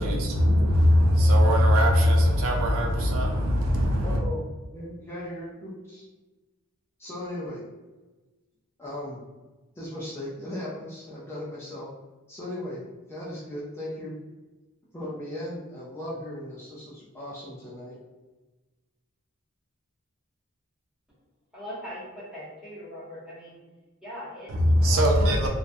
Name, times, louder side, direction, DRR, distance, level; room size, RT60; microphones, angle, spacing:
voice 1, 0.0-4.2 24.5-25.5, equal, 70° right, 1 dB, 0.4 m, -20 dB
voice 2, 4.0-4.5 4.7-6.1 7.0-7.6 8.8-9.2 9.8-11.9 12.3-12.8 13.1-14.1 14.9-18.0, left 1 dB, 10° left, -7 dB, 0.4 m, -37 dB
voice 3, 21.5-23.6 24.0-24.5 24.8-25.0 25.4-25.5, equal, 5° right, -9 dB, 0.9 m, -40 dB
2.4 x 2.1 x 2.6 m, 1.2 s
head